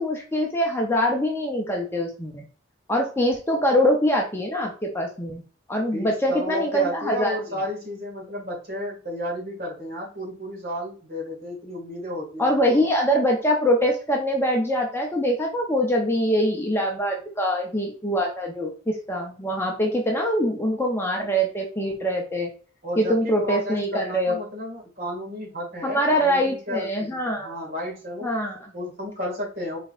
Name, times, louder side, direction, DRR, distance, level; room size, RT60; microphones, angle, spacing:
voice 1, 0.0-2.4 2.9-5.4 5.7-7.3 12.4-22.5 23.0-24.4 25.8-27.6 28.2-28.6, equal, 10° left, 0 dB, 0.7 m, -23 dB
voice 2, 5.9-12.8 22.8-28.3 28.7-29.8, left 1 dB, 45° right, -2 dB, 2.1 m, -32 dB
4.6 x 3.8 x 2.5 m, 0.37 s
head